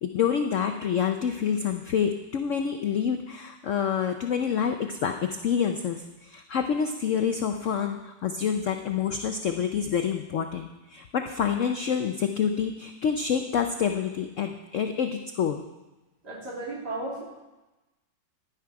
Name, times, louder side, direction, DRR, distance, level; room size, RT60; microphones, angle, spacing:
voice 1, 0.0-15.6, left 7 dB, 80° left, 6 dB, 0.7 m, -27 dB
voice 2, 16.2-17.2, right 2 dB, 55° right, -4 dB, 3.4 m, -34 dB
11.0 x 10.5 x 4.7 m, 1.1 s
omnidirectional pair, 2.1 m